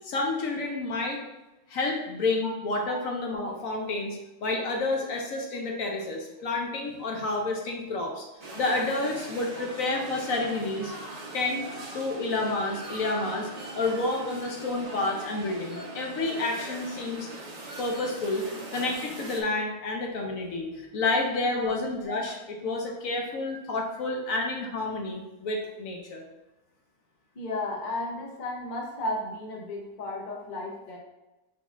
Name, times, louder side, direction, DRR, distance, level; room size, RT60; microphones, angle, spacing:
voice 1, 0.0-1.2 1.7-8.2 8.5-10.9 11.3-11.7 11.9-17.3 17.8-26.2, left 2 dB, 65° left, 1 dB, 1.1 m, -30 dB
sound 1, 8.4-19.4, right 2 dB, 35° right, 0.7 m, -41 dB
voice 2, 27.3-31.0, left 2 dB, 40° left, -1 dB, 0.8 m, -34 dB
5.8 x 3.7 x 2.4 m, 1.0 s
omnidirectional pair, 1.6 m